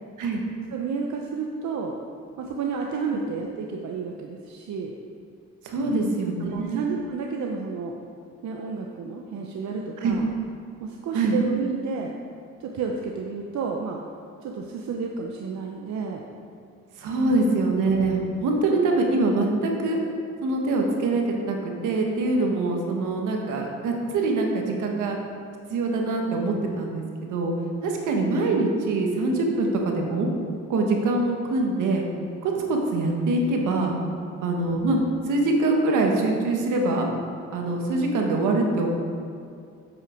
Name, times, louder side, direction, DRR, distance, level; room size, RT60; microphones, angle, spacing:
voice 1, 0.7-1.9 2.4-4.9 5.8-7.9 8.4-10.3 10.8-12.1 12.6-14.0 14.4-16.3 17.2-17.5 34.2-34.6, right 4 dB, 65° right, 1 dB, 0.8 m, -31 dB
voice 2, 5.6-6.9 10.0-10.1 11.1-11.4 17.0-20.0 20.4-25.2 25.7-27.5 27.8-30.3 30.7-32.1 32.4-33.9 34.4-35.0 35.3-37.1 37.5-38.9, right 2 dB, 85° right, 1 dB, 1.5 m, -24 dB
8.9 x 7.8 x 4.5 m, 2.4 s
cardioid pair, 90°, 30 cm